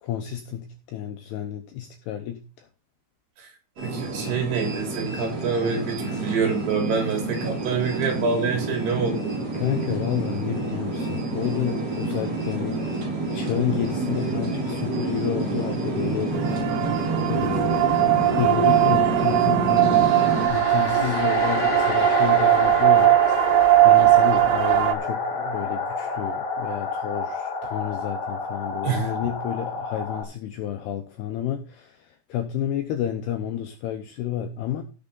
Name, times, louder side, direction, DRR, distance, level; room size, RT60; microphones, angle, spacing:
voice 1, 0.0-2.7 6.0-6.3 7.7-7.8 8.9-9.0 9.5-12.8 13.3-17.9 18.4-20.1 20.5-23.2 23.8-34.8, left 10 dB, 85° left, 2.3 m, -30 dB
sound 1, 3.8-20.5, right 2 dB, 35° right, 5.8 m, -28 dB
voice 2, 3.8-9.4 20.8-21.1 28.8-29.1, right 5 dB, 55° right, 5.0 m, -26 dB
sound 2, 16.4-25.0, right 16 dB, 90° right, 3.6 m, -19 dB
sound 3, 19.8-30.2, left 4 dB, 50° left, 1.4 m, -29 dB
16.0 x 6.7 x 3.8 m
omnidirectional pair, 5.8 m